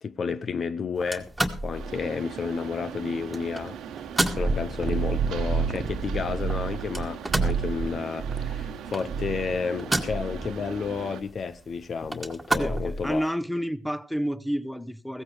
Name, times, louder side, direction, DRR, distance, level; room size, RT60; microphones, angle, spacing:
voice 1, 0.0-1.3 1.6-3.8 4.4-13.3, left 5 dB, 50° left, 0.6 m, -31 dB
sound 1, 1.0-13.3, right 1 dB, 10° right, 1.9 m, -34 dB
Mechanisms, 1.7-11.2, right 9 dB, 70° right, 1.1 m, -40 dB
sound 2, 4.4-7.0 7.3-7.9 8.2-8.7 9.1-9.6, right 6 dB, 45° right, 1.2 m, -29 dB
voice 2, 12.6-15.2, equal, 5° left, 0.9 m, -30 dB
16.0 x 15.0 x 3.4 m
hypercardioid pair, 50°, 0 cm